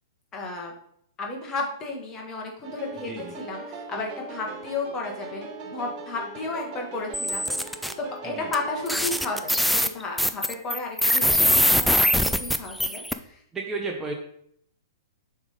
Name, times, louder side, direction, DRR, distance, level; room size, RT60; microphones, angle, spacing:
voice 1, 0.3-0.7 1.2-3.1 3.4-13.4, left 3 dB, 25° left, 0 dB, 1.7 m, -33 dB
sound 1, 2.6-9.3, right 3 dB, 35° right, 1.2 m, -40 dB
voice 2, 3.0-3.3 8.2-8.5 13.5-14.1, right 3 dB, 15° right, 1 dB, 0.9 m, -33 dB
sound 2, 7.1-7.9 8.5-8.6 8.9-13.1, equal, ahead, 0.4 m, -22 dB
7.1 x 3.6 x 5.0 m, 0.68 s
figure-of-eight pair, 110°, 2 cm